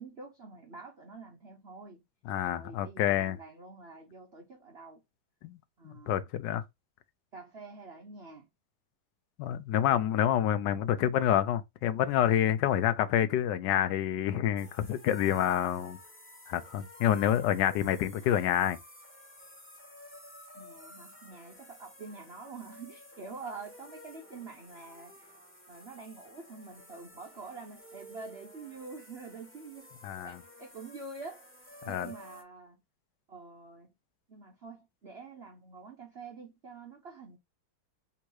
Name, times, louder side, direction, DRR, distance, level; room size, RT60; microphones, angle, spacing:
voice 1, 0.0-2.0 2.4-5.0 5.8-6.3 7.3-8.5 20.5-25.3 25.7-29.9 30.2-31.5 31.8-32.8 33.3-33.9 34.3-37.4, right 4 dB, 60° right, 0.6 m, -47 dB
voice 2, 2.3-3.4 5.4-5.6 5.8-6.6 9.4-16.0 16.5-18.8 30.0-30.4 31.8-32.1, left 11 dB, 70° left, 1.2 m, -28 dB
sound 1, 14.6-32.4, left 1 dB, 10° left, 0.8 m, -52 dB
3.5 x 2.9 x 4.6 m
omnidirectional pair, 2.1 m